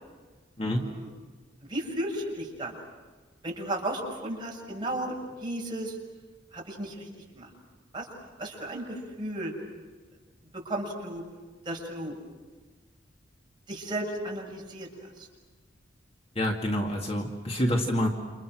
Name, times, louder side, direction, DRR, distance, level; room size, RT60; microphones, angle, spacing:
voice 1, 0.7-1.1 1.7-2.7 3.4-6.0 6.5-7.1 7.3-7.5 7.9-8.1 8.4-9.5 10.7-11.2 11.7-12.2 13.7-14.9, right 1 dB, 25° right, -2 dB, 6.9 m, -34 dB
voice 2, 16.4-18.1, equal, 30° left, 1 dB, 2.2 m, -27 dB
29.5 x 28.5 x 6.3 m, 1.4 s
head